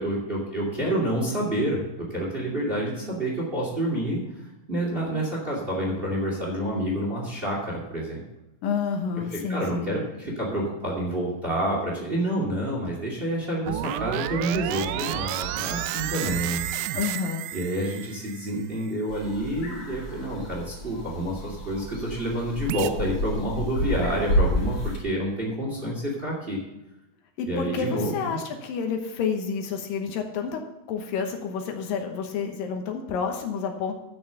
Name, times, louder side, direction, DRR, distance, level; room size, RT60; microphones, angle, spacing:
voice 1, 0.0-4.2 4.7-8.2 9.5-16.7 17.5-26.6 27.5-28.4, right 1 dB, 20° right, -2 dB, 2.2 m, -28 dB
voice 2, 8.6-9.9 16.9-17.4 27.4-30.6 30.9-33.9, left 6 dB, 75° left, 4 dB, 2.7 m, -29 dB
sound 1, 13.7-18.9 22.7-22.9, right 13 dB, 80° right, 1.9 m, -31 dB
sound 2, 19.1-25.0, left 1 dB, 40° left, 4.2 m, -30 dB
11.0 x 6.2 x 6.8 m, 0.94 s
omnidirectional pair, 4.1 m